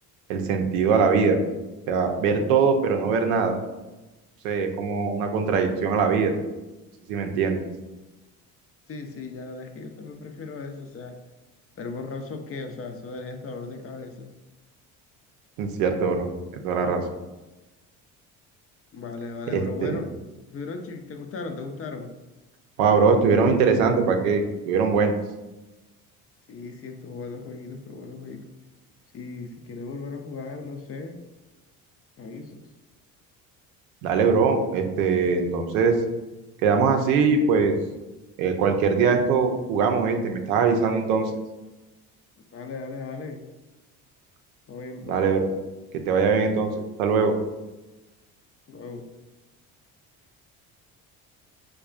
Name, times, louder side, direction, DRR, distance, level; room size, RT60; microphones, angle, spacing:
voice 1, 0.3-1.4 1.9-3.6 4.4-6.3 7.1-7.6 15.6-16.3 16.6-17.0 19.5-20.0 22.8-25.1 34.0-36.0 36.6-37.7 38.4-41.3 45.1-45.5 45.9-47.3, right 5 dB, 85° right, 5 dB, 0.6 m, -22 dB
voice 2, 8.9-11.2 11.8-14.3 18.9-20.1 20.5-22.1 26.5-28.5 29.1-31.2 32.2-32.6 42.5-43.4 44.7-45.2 48.7-49.1, left 4 dB, 35° left, 6 dB, 0.5 m, -37 dB
4.8 x 2.3 x 2.4 m, 1.1 s
hypercardioid pair, 60°, 42 cm